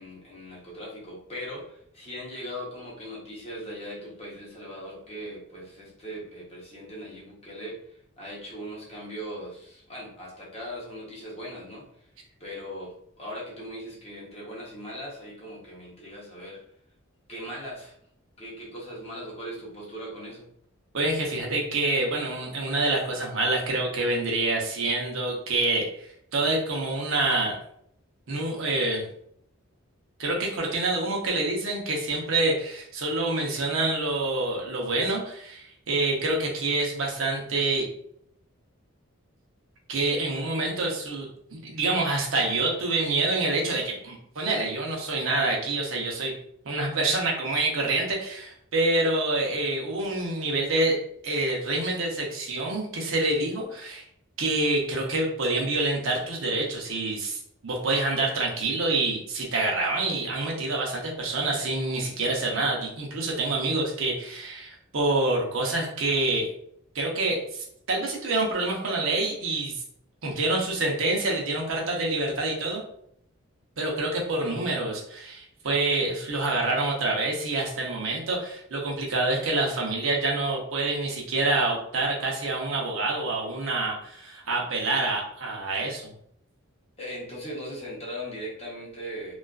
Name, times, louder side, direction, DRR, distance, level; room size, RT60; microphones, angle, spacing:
voice 1, 0.0-12.1 12.4-16.6 17.3-18.0 18.4-20.5 87.0-89.4, equal, 30° left, -4 dB, 0.7 m, -39 dB
voice 2, 20.9-26.1 26.3-27.6 28.3-29.0 30.2-37.9 39.9-46.3 46.7-51.0 51.2-54.0 54.4-66.5 66.9-69.8 70.2-72.8 73.8-86.1, right 2 dB, 70° right, -1 dB, 0.6 m, -27 dB
2.3 x 2.3 x 2.3 m, 0.69 s
head